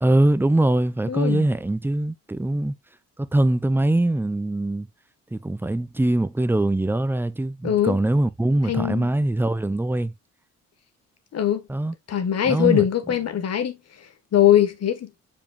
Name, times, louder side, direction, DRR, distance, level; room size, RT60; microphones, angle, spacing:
voice 1, 0.0-2.7 3.2-4.9 5.3-10.1 11.7-11.9 12.4-12.8, right 1 dB, 5° right, 0.6 m, -22 dB
voice 2, 1.1-1.4 7.6-8.0 8.7-9.1 11.3-11.6 12.1-13.8 14.3-15.1, left 10 dB, 55° left, 1.7 m, -21 dB
7.1 x 5.3 x 2.5 m
cardioid pair, 90°, 30 cm